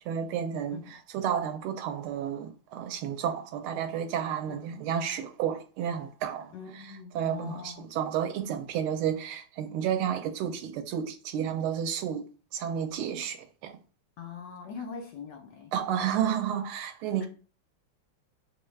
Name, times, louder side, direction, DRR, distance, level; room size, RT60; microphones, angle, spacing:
voice 1, 0.0-6.5 7.1-12.2 12.5-13.7 15.7-17.3, right 9 dB, 85° right, 1.5 m, -31 dB
voice 2, 6.5-7.9 14.2-15.7 16.1-16.2 17.2-17.3, left 6 dB, 65° left, 1.2 m, -42 dB
6.0 x 2.3 x 3.2 m
omnidirectional pair, 2.3 m